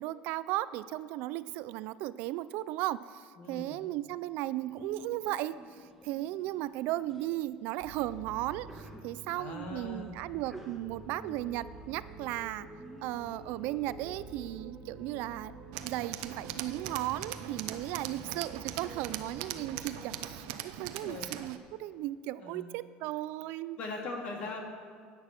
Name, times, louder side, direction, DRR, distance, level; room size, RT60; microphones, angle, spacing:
voice 1, 0.0-12.7 13.0-15.5 15.8-23.8, right 15 dB, 65° right, 16 dB, 0.4 m, -36 dB
voice 2, 3.4-3.8 9.3-10.2 18.1-18.4 20.6-20.7 21.0-21.3 22.4-22.7 23.8-24.6, left 3 dB, 40° left, 1 dB, 2.4 m, -41 dB
Sneeze, 4.6-14.6, right 1 dB, ahead, 1.3 m, -53 dB
sound 1, 7.8-20.4, right 3 dB, 45° right, 1.8 m, -48 dB
Tools, 15.7-21.6, right 12 dB, 80° right, 0.7 m, -41 dB
11.0 x 9.4 x 7.5 m, 2.1 s
cardioid pair, 165°, 3 cm